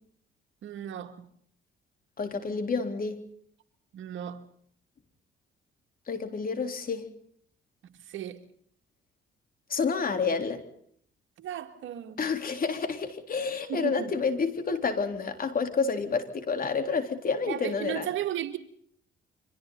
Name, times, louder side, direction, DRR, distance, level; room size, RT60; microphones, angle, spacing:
voice 1, 0.6-1.3 3.9-4.4 8.1-8.4 11.4-12.3 13.7-14.1 17.5-18.6, right 10 dB, 75° right, 2.3 m, -35 dB
voice 2, 2.2-3.2 6.1-7.0 9.7-10.6 12.2-18.1, left 5 dB, 45° left, 3.7 m, -29 dB
30.0 x 25.5 x 4.0 m
cardioid pair, 90°, 20 cm